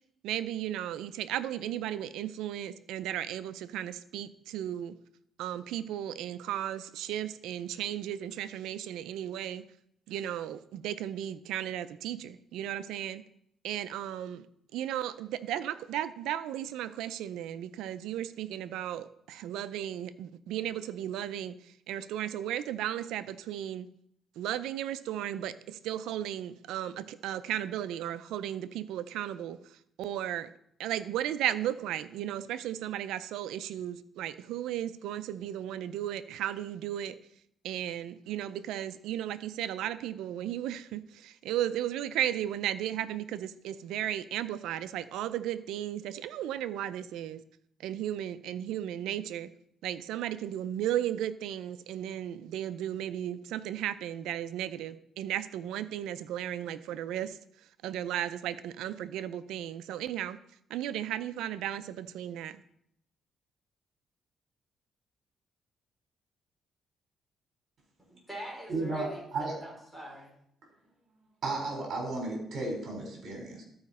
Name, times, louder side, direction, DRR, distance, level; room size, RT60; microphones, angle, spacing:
voice 1, 0.2-5.0 5.4-9.6 10.1-13.2 13.6-14.5 14.7-23.9 24.4-30.5 30.8-37.2 37.6-47.4 47.8-49.5 49.8-57.4 57.8-60.4 60.7-62.6, right 11 dB, 90° right, 14 dB, 0.4 m, -35 dB
voice 2, 68.1-70.3, equal, 5° right, -1 dB, 3.9 m, -44 dB
voice 3, 68.7-69.5 71.4-73.6, right 2 dB, 55° right, 0 dB, 4.1 m, -34 dB
13.0 x 5.0 x 4.2 m, 0.73 s
cardioid pair, 90°, 0 cm